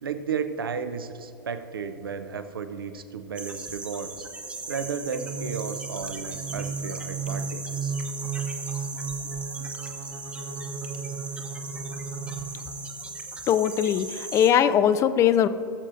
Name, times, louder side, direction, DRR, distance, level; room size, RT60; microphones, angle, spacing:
voice 1, 0.0-4.3 4.7-8.0, right 6 dB, 75° right, 10 dB, 0.7 m, -33 dB
sound 1, 3.4-14.5, right 3 dB, 10° right, 0.9 m, -38 dB
sound 2, 5.1-13.0, right 5 dB, 50° right, 1.1 m, -35 dB
voice 2, 13.5-15.5, left 9 dB, 25° left, 13 dB, 0.4 m, -21 dB
18.0 x 7.4 x 2.6 m, 2.8 s
figure-of-eight pair, 100°, 12 cm